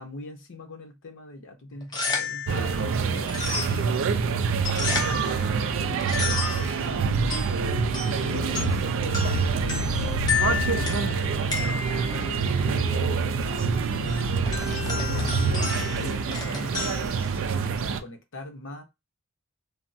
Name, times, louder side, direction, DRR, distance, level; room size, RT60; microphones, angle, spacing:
voice 1, 0.0-3.3 3.9-14.1 14.7-17.3 17.8-18.8, left 2 dB, 60° left, 0.8 m, -41 dB
sound 1, 1.7-18.0, left 5 dB, 20° left, 0.7 m, -34 dB
sound 2, 2.5-18.0, right 4 dB, 65° right, 0.4 m, -26 dB
3.3 x 2.0 x 2.6 m
head